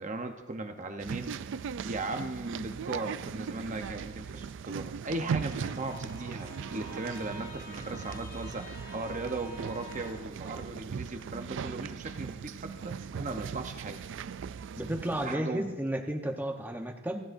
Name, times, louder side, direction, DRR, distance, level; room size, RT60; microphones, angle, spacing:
voice 1, 0.0-14.0 15.2-15.7, right 2 dB, 40° right, 5 dB, 0.9 m, -38 dB
sound 1, 1.0-15.4, right 6 dB, 65° right, 0.3 m, -39 dB
Bowed string instrument, 5.2-10.4, left 1 dB, 65° left, 2.4 m, -49 dB
voice 2, 14.8-17.2, right 1 dB, 10° right, 2 dB, 0.9 m, -33 dB
29.5 x 10.5 x 2.6 m, 1.1 s
head